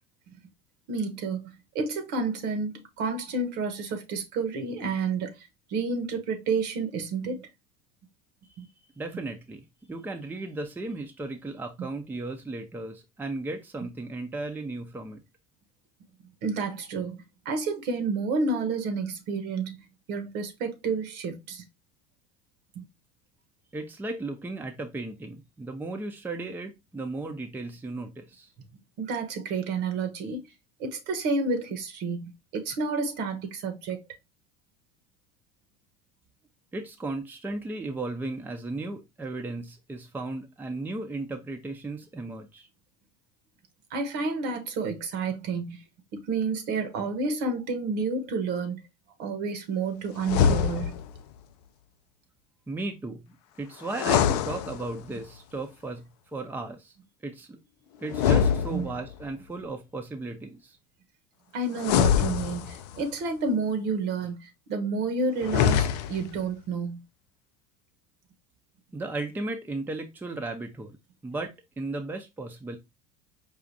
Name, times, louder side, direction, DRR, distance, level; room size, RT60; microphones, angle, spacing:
voice 1, 0.9-7.5 8.6-8.7 11.8-11.9 16.4-17.2 17.4-19.8 20.1-21.6 22.7-22.8 29.0-30.5 30.8-34.0 43.9-45.8 46.1-48.8 49.2-50.9 58.7-58.9 61.5-67.0, right 4 dB, 60° right, 1.0 m, -30 dB
voice 2, 9.0-15.2 23.7-28.5 36.7-42.7 52.7-56.9 57.2-57.6 58.0-60.8 68.9-71.0 71.2-72.8, right 2 dB, 10° right, 0.6 m, -35 dB
sound 1, 50.2-51.2 53.9-55.2 58.1-59.3 61.8-63.0 65.4-66.4, left 8 dB, 85° left, 0.4 m, -24 dB
4.9 x 2.4 x 2.6 m
supercardioid pair, 105°, 20 cm